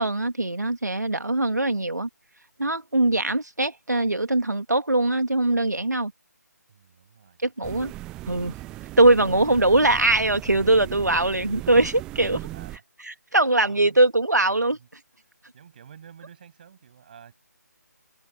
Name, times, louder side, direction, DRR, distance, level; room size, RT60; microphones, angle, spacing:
voice 1, 0.0-2.1 2.6-6.1 7.4-7.9 8.3-8.5 9.0-12.5 13.1-14.8, right 2 dB, 70° right, 2.3 m, -21 dB
voice 2, 6.7-7.9 12.5-12.8 13.6-14.0 14.6-14.9 15.2-17.3, right 8 dB, 30° right, 7.5 m, -51 dB
sound 1, 7.6-12.8, right 17 dB, 5° right, 0.6 m, -38 dB
figure-of-eight pair, 150°, 10 cm